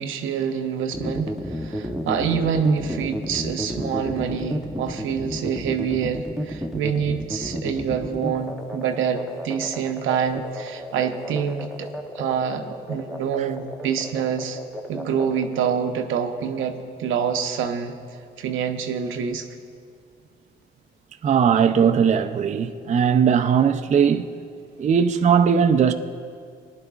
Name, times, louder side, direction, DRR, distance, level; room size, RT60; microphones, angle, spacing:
voice 1, 0.0-11.9 12.2-14.6 14.9-18.0 18.4-19.5, right 7 dB, 80° right, 0.8 m, -26 dB
sound 1, 0.9-15.7, equal, ahead, 1.0 m, -32 dB
voice 2, 21.2-24.3 24.8-25.9, right 7 dB, 35° right, 0.4 m, -19 dB
20.0 x 10.5 x 2.4 m
cardioid pair, 90°, 20 cm